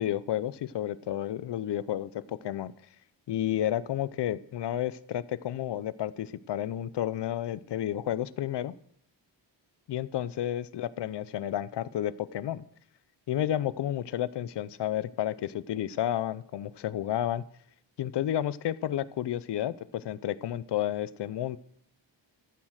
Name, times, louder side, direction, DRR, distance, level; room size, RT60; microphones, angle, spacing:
voice 1, 0.0-2.7 3.3-8.7 9.9-12.6 13.3-17.4 18.0-21.6, left 11 dB, 65° left, 17 dB, 0.6 m, -31 dB
14.0 x 7.4 x 6.4 m, 0.70 s
wide cardioid pair, 135°, 45 cm